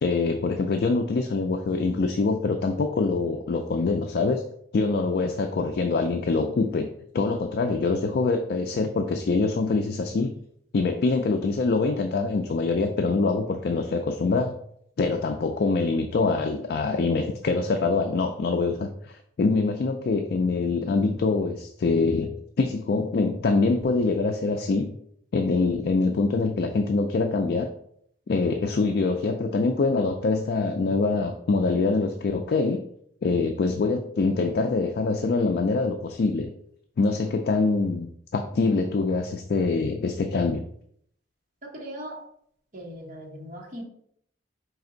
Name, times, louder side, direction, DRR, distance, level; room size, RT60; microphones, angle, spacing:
voice 1, 0.0-4.4 4.7-6.9 7.1-10.3 10.7-14.5 15.0-22.3 22.6-24.9 25.3-27.7 28.3-32.8 33.2-36.5 37.0-40.6, left 3 dB, 60° left, 5 dB, 0.4 m, -24 dB
voice 2, 41.7-42.2 42.7-43.8, equal, 45° right, -4 dB, 1.3 m, -39 dB
5.1 x 2.6 x 3.8 m, 0.68 s
head